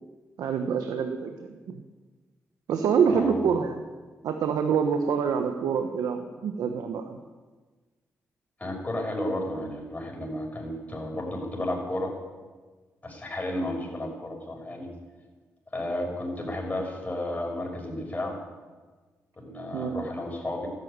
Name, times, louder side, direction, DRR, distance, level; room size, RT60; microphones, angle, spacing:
voice 1, 0.4-1.8 2.7-3.8 4.2-7.2 19.7-20.0, right 6 dB, 85° right, 6 dB, 1.1 m, -26 dB
voice 2, 3.1-3.4 8.6-12.1 13.0-14.9 15.7-18.4 19.4-20.7, left 1 dB, 25° left, 0 dB, 6.0 m, -32 dB
13.5 x 10.5 x 9.6 m, 1.4 s
cardioid pair, 65°, 6 cm